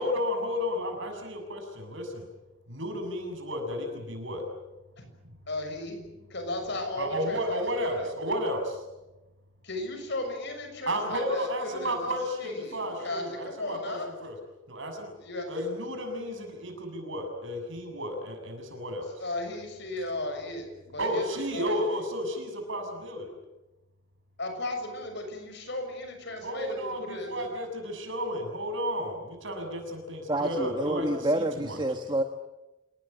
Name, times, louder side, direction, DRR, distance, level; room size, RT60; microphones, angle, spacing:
voice 1, 0.0-2.2 2.7-4.4 7.0-8.8 10.9-14.3 14.7-15.1 15.5-19.1 21.0-23.3 26.4-31.8, equal, 65° right, 4 dB, 7.0 m, -32 dB
voice 2, 5.5-6.0 6.3-8.1 9.6-12.1 12.4-14.2 15.2-15.5 19.2-21.3 21.5-21.8 24.4-27.4, left 2 dB, 55° left, 6 dB, 6.5 m, -35 dB
voice 3, 30.3-32.2, right 1 dB, 20° right, 6 dB, 1.3 m, -28 dB
28.0 x 19.0 x 8.9 m, 1.0 s
head